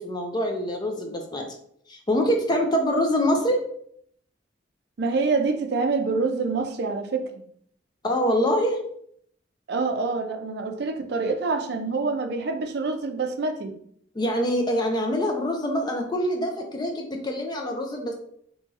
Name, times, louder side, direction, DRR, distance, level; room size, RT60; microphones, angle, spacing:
voice 1, 0.0-1.5 1.9-3.6 8.0-8.8 14.1-18.1, equal, 20° left, 3 dB, 0.4 m, -25 dB
voice 2, 5.0-7.4 9.7-13.8, right 4 dB, 55° right, 6 dB, 0.4 m, -26 dB
2.9 x 2.7 x 3.5 m, 0.66 s
head